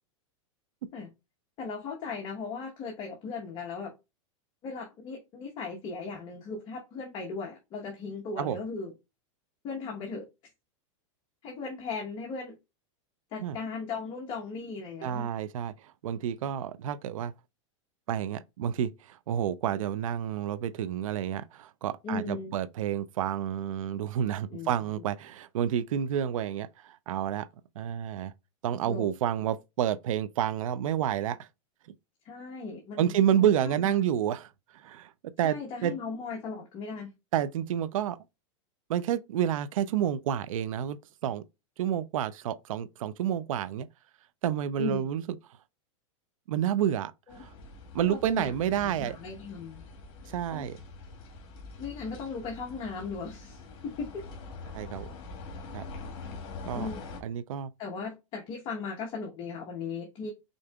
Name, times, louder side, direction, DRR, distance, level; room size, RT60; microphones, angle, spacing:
voice 1, 1.6-3.9 4.6-8.9 9.6-10.3 11.4-12.5 13.3-15.3 22.0-22.6 24.5-25.0 28.9-29.1 32.2-33.9 35.4-37.1 44.8-45.1 47.3-47.4 48.0-48.5 48.8-49.8 50.5-50.7 51.8-54.2 56.7-57.0 57.8-60.3, left 4 dB, 30° left, 1.1 m, -37 dB
voice 2, 15.0-15.7 16.0-17.3 18.1-27.5 27.8-28.3 28.6-31.5 33.0-35.1 35.4-35.9 37.3-38.2 38.9-41.4 41.8-43.9 44.4-45.2 46.5-47.5 47.9-49.2 50.3-50.8 54.7-55.1 55.7-55.8 56.7-56.9 57.2-57.7, right 10 dB, 85° right, 0.5 m, -29 dB
sound 1, 47.3-57.2, left 3 dB, 50° left, 1.6 m, -44 dB
5.1 x 3.8 x 2.3 m
supercardioid pair, 155°, 17 cm